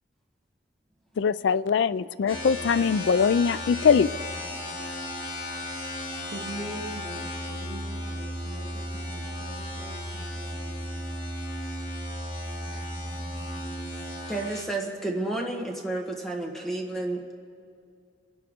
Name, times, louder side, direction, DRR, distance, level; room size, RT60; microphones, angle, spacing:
voice 1, 1.2-4.1, left 6 dB, 75° left, 0.3 m, -22 dB
sound 1, 2.3-14.7, left 1 dB, 30° left, 2.7 m, -35 dB
voice 2, 6.3-10.9, right 1 dB, 75° right, 2.7 m, -42 dB
voice 3, 14.3-17.3, right 2 dB, ahead, 1.4 m, -31 dB
29.5 x 11.5 x 3.7 m
head